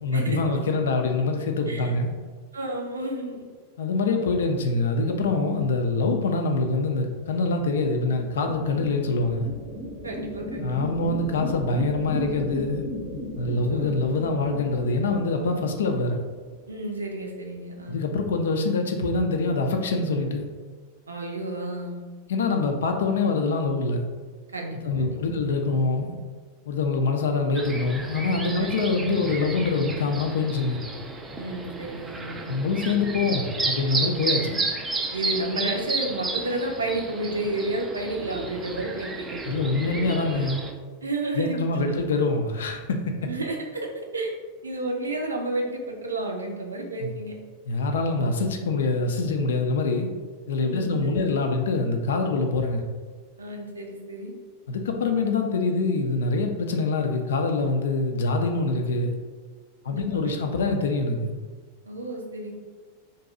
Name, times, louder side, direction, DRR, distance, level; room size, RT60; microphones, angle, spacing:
voice 1, 0.0-2.1 3.8-9.5 10.6-12.8 13.4-16.2 17.9-20.5 22.3-24.0 24.8-26.1 26.7-30.8 32.5-34.6 39.5-40.7 41.3-43.1 47.0-47.1 47.7-50.1 50.5-52.8 54.7-59.2 59.8-61.3, left 3 dB, 60° left, 4 dB, 0.4 m, -25 dB
voice 2, 2.5-3.4 10.0-11.1 13.4-13.9 16.7-18.0 21.1-22.0 24.5-25.2 28.6-28.7 31.4-32.5 35.1-39.4 41.0-41.6 41.9-42.0 43.3-44.3 44.6-47.3 50.6-51.3 53.4-54.3 59.9-60.4 61.9-62.5, right 2 dB, 75° right, 2 dB, 0.5 m, -31 dB
sound 1, 7.1-16.7, equal, 15° left, 0.6 m, -36 dB
sound 2, 27.5-40.7, right 3 dB, 15° right, 0.3 m, -32 dB
2.6 x 2.2 x 3.7 m, 1.4 s
figure-of-eight pair, 90°, 0 cm